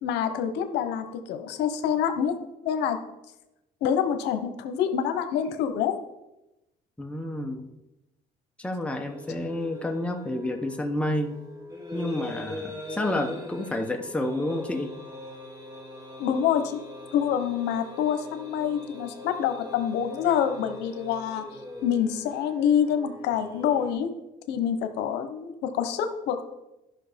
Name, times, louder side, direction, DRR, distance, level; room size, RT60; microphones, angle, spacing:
voice 1, 0.0-2.4 2.6-3.0 3.8-6.0 16.2-16.8 17.1-21.4 21.8-24.1 24.5-26.4, left 8 dB, 85° left, 8 dB, 1.0 m, -26 dB
voice 2, 7.0-7.7 8.6-11.4 11.9-14.9, left 1 dB, 5° left, 3 dB, 1.2 m, -30 dB
sound 1, 9.0-23.9, left 1 dB, 20° right, 3.5 m, -42 dB
12.0 x 5.9 x 5.2 m, 0.96 s
cardioid pair, 110°, 17 cm